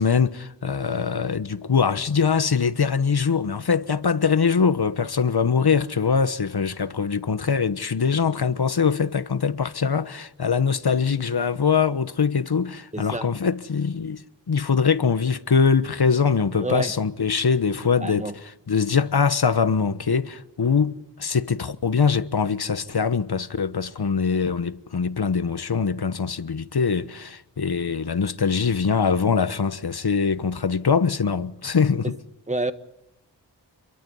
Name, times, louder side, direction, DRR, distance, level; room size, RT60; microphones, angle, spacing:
voice 1, 0.0-14.2 14.5-18.3 18.7-32.2, left 6 dB, 55° left, 1.2 m, -23 dB
voice 2, 12.9-13.3 16.6-16.9 18.0-18.4 32.0-32.2 32.5-32.7, right 2 dB, 15° right, 1.7 m, -28 dB
28.5 x 23.0 x 5.6 m
wide cardioid pair, 70°, 45 cm